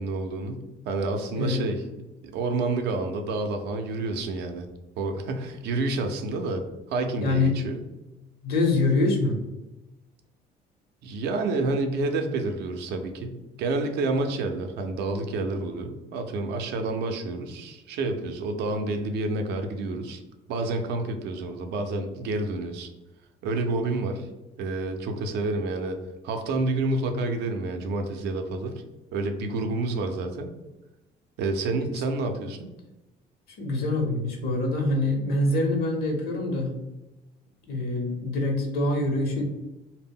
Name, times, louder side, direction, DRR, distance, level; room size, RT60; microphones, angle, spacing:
voice 1, 0.0-1.8 2.3-4.7 5.0-6.6 6.9-7.8 11.0-20.2 20.5-22.9 23.4-24.3 24.6-26.0 26.2-28.8 29.1-30.5 31.4-32.7, right 2 dB, 80° right, 5 dB, 0.5 m, -29 dB
voice 2, 1.3-1.7 7.2-7.6 8.4-9.4 33.6-36.7 37.7-39.5, left 2 dB, 70° left, 2 dB, 0.8 m, -25 dB
2.1 x 2.0 x 3.5 m, 0.99 s
cardioid pair, 110°, 17 cm